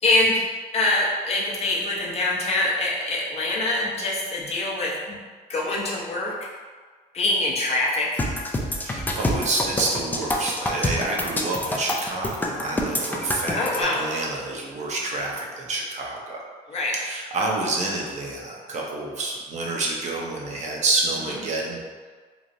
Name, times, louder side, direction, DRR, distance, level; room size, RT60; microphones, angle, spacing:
voice 1, 0.0-5.2 5.5-6.3 7.1-8.2 13.5-14.0 16.7-16.9, left 2 dB, 40° left, -4 dB, 0.6 m, -24 dB
sound 1, 8.2-13.8, left 1 dB, 10° left, 0.3 m, -26 dB
voice 2, 8.8-16.4 16.9-21.8, right 2 dB, 45° right, -2 dB, 0.6 m, -28 dB
3.0 x 2.4 x 2.6 m, 1.5 s
cardioid pair, 110°, 17 cm